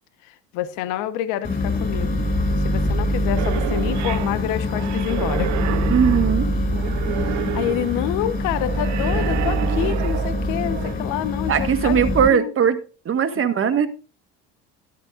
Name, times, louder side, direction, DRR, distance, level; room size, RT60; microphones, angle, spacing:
voice 1, 0.2-2.3 2.6-5.5 7.1-12.5, left 12 dB, 70° left, 1.2 m, -28 dB
sound 1, 1.4-12.3, left 1 dB, 25° left, 7.3 m, -24 dB
sound 2, 3.4-10.9, right 15 dB, 60° right, 0.8 m, -31 dB
voice 2, 5.9-6.5 11.5-12.8 13.1-13.9, right 8 dB, 40° right, 1.7 m, -19 dB
13.0 x 11.5 x 2.5 m
hypercardioid pair, 75°, 33 cm